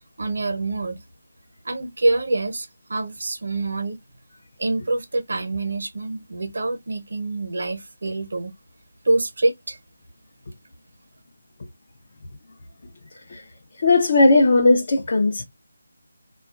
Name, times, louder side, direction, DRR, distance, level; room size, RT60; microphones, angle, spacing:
voice 1, 0.2-1.0 1.6-4.0 4.6-8.5 9.0-9.8, right 2 dB, 55° right, 0.9 m, -25 dB
voice 2, 13.8-15.4, left 2 dB, 45° left, 0.6 m, -17 dB
3.5 x 2.3 x 2.4 m
figure-of-eight pair, 160°, 0 cm